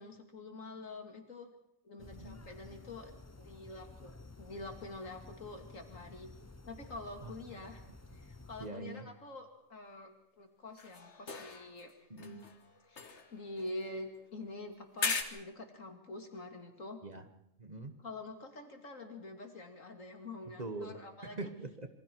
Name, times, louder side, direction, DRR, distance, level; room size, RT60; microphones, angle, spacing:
voice 1, 0.0-1.5 1.8-4.1 4.4-6.3 6.7-7.9 8.1-11.9 12.8-17.0 18.0-21.5, left 2 dB, 85° left, 4 dB, 3.1 m, -46 dB
sound 1, 2.0-8.7, left 2 dB, 15° left, 0.7 m, -53 dB
voice 2, 2.1-2.5 7.2-7.3 8.6-9.0 12.1-12.4 17.0-17.2 17.6-18.0 20.6-21.0 21.2-21.9, right 2 dB, 35° right, 7 dB, 1.5 m, -43 dB
sound 2, 10.8-11.9 12.2-14.3 15.0-15.2, left 4 dB, 60° left, 1.9 m, -39 dB
27.0 x 23.5 x 4.7 m, 0.81 s
omnidirectional pair, 1.3 m